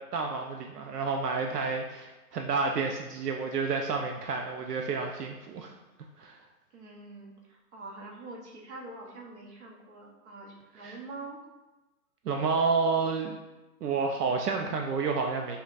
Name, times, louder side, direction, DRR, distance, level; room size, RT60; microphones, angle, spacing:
voice 1, 0.0-5.7 6.2-6.4 10.7-11.0 12.3-13.4 13.8-15.6, right 4 dB, 85° right, 3 dB, 0.6 m, -30 dB
voice 2, 6.7-11.4, right 2 dB, 45° right, -2 dB, 0.9 m, -45 dB
4.8 x 2.3 x 2.5 m, 1.1 s
hypercardioid pair, 135°, 46 cm